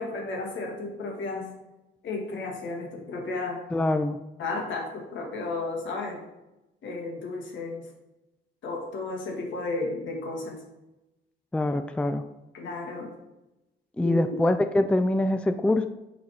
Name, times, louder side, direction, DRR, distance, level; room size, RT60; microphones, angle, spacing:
voice 1, 0.0-1.5 2.0-3.6 4.4-6.2 6.8-7.9 8.6-10.6 12.5-13.1 14.0-14.4, left 3 dB, 70° left, 1 dB, 1.8 m, -33 dB
voice 2, 3.7-4.2 11.5-12.2 14.0-15.9, left 1 dB, 5° left, 9 dB, 0.3 m, -24 dB
7.3 x 4.0 x 4.7 m, 0.97 s
cardioid pair, 90°, 20 cm